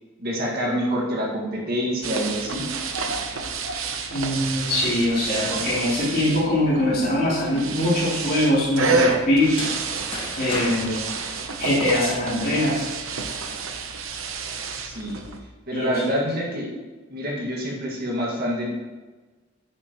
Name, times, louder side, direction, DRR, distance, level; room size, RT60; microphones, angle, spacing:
voice 1, 0.2-2.7 14.8-15.2 15.7-16.7 17.1-18.7, equal, 50° right, -2 dB, 2.0 m, -26 dB
sound 1, 2.0-15.4, right 4 dB, 85° right, 0.9 m, -30 dB
voice 2, 4.1-9.6 10.4-11.0 11.6-12.9 15.7-16.2, left 1 dB, 50° left, -8 dB, 3.4 m, -22 dB
sound 2, 9.4-12.3, left 2 dB, 25° left, 1.9 m, -35 dB
10.0 x 9.5 x 3.1 m, 1.3 s
head